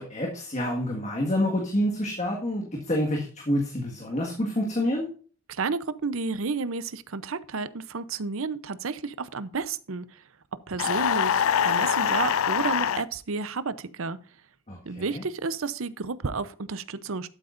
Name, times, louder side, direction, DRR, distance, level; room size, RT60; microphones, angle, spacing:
voice 1, 0.0-5.1 14.7-15.2, left 1 dB, 30° left, 1.7 m, -28 dB
voice 2, 5.5-10.2 10.7-14.2 14.8-17.3, right 4 dB, 70° right, 0.7 m, -31 dB
sound 1, 10.8-13.0, left 8 dB, 70° left, 0.4 m, -24 dB
12.0 x 8.7 x 2.6 m
head